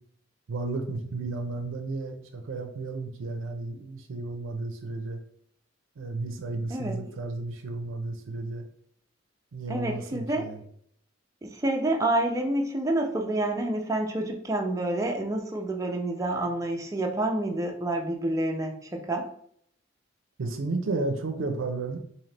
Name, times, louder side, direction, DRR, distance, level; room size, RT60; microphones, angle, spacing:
voice 1, 0.5-5.2 6.0-8.6 9.5-10.6 20.4-22.0, right 3 dB, 80° right, 5 dB, 0.5 m, -33 dB
voice 2, 6.7-7.0 9.7-10.5 11.4-19.3, right 1 dB, 15° right, 2 dB, 0.4 m, -28 dB
3.9 x 2.8 x 3.2 m, 0.65 s
head